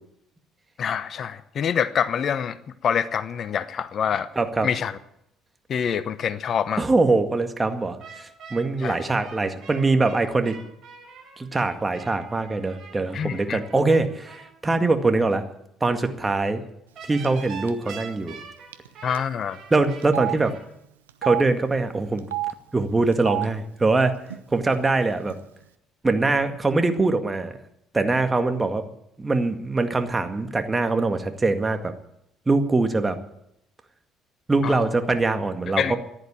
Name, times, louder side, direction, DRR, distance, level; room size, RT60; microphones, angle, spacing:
voice 1, 0.8-2.6 2.8-4.3 4.6-5.0 5.7-6.8 8.8-9.0 13.1-13.6 19.0-19.6 34.6-34.9 35.8-36.0, left 8 dB, 50° left, 15 dB, 0.8 m, -26 dB
voice 2, 4.4-4.7 6.8-10.5 11.4-15.4 15.8-16.6 17.1-18.4 19.7-20.5 21.2-22.3 22.7-24.2 24.5-25.4 26.0-27.6 27.9-28.8 29.2-31.9 32.5-33.2 34.5-36.0, right 3 dB, 20° right, 7 dB, 1.9 m, -23 dB
sound 1, 8.0-14.5 17.0-20.6, right 5 dB, 55° right, 7.9 m, -43 dB
Telephone, 17.2-17.4 17.7-17.8 18.7-18.9 19.1-19.2 20.0-20.3 21.1-21.4 22.2-22.5 23.1-23.5 24.3-24.4 24.7-25.3, right 17 dB, 85° right, 0.7 m, -29 dB
14.5 x 10.5 x 8.8 m, 0.78 s
hypercardioid pair, 55°, 0 cm